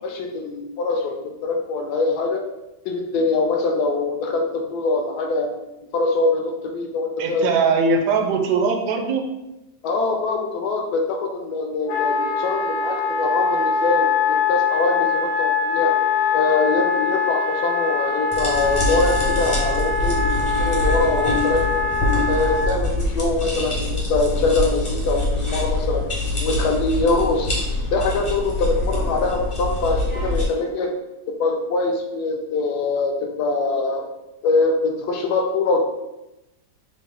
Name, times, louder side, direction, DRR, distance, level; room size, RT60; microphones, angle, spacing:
voice 1, 0.0-2.4 2.8-5.5 5.9-7.4 9.8-15.9 16.3-21.8 22.3-26.0 26.4-27.5 27.9-30.9 31.4-34.0 34.4-35.8, left 3 dB, 70° left, 3 dB, 1.0 m, -23 dB
voice 2, 7.2-9.2, right 4 dB, 75° right, 3 dB, 1.1 m, -20 dB
Wind instrument woodwind instrument, 11.9-22.7, left 5 dB, 90° left, 1.3 m, -23 dB
sound 1, 18.3-30.4, left 1 dB, 30° left, 0.5 m, -24 dB
4.0 x 2.0 x 3.6 m, 0.96 s
omnidirectional pair, 1.9 m